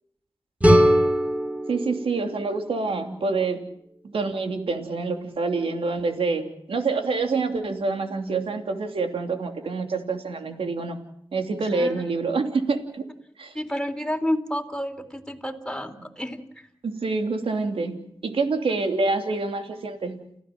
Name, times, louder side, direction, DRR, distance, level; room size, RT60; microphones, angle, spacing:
sound 1, 0.6-3.5, equal, 15° right, 5.7 m, -22 dB
voice 1, 1.7-3.6 4.1-11.0 11.3-13.0 13.4-13.5 16.8-20.2, right 3 dB, 85° right, 5 dB, 2.9 m, -26 dB
voice 2, 11.7-12.0 13.5-16.4 17.8-17.9, equal, 10° left, 4 dB, 3.7 m, -30 dB
29.5 x 15.5 x 7.4 m, 0.73 s
cardioid pair, 55°, 9 cm